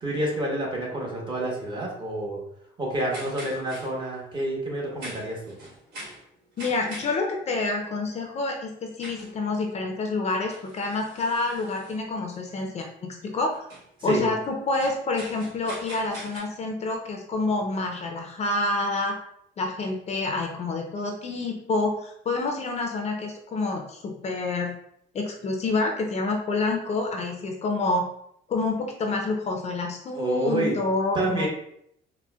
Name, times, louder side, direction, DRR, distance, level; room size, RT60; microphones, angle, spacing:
voice 1, 0.0-2.4 2.8-5.5 14.0-14.2 30.1-30.7 31.1-31.5, right 1 dB, 30° right, -3 dB, 1.0 m, -28 dB
sound 1, 3.1-16.4, right 1 dB, 70° right, 1.4 m, -44 dB
voice 2, 6.6-13.7 14.0-19.2 19.6-24.8 25.1-28.1 28.5-31.5, left 3 dB, 40° left, 2 dB, 0.5 m, -28 dB
4.1 x 2.1 x 2.3 m, 0.72 s
cardioid pair, 110°, 17 cm